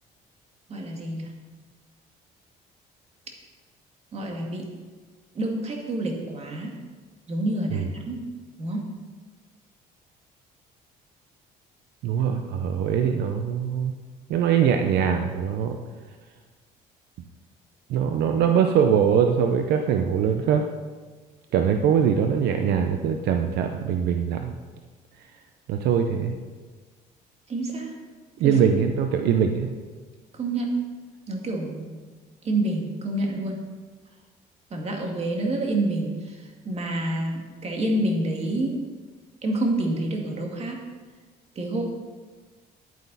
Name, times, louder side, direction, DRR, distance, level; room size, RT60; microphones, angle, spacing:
voice 1, 0.7-1.3 4.1-4.7 5.3-6.8 7.3-8.3 8.6-9.0 27.5-27.9 28.4-28.6 30.3-30.8 31.3-32.0 32.4-33.7 34.7-38.8 39.4-40.8 41.6-41.8, right 1 dB, 40° right, 1 dB, 2.2 m, -28 dB
voice 2, 12.0-14.0 14.3-15.8 17.9-20.6 21.5-24.5 25.7-26.3 28.4-29.7, right 8 dB, 75° right, 5 dB, 0.8 m, -22 dB
10.5 x 9.3 x 4.1 m, 1.4 s
cardioid pair, 110°, 17 cm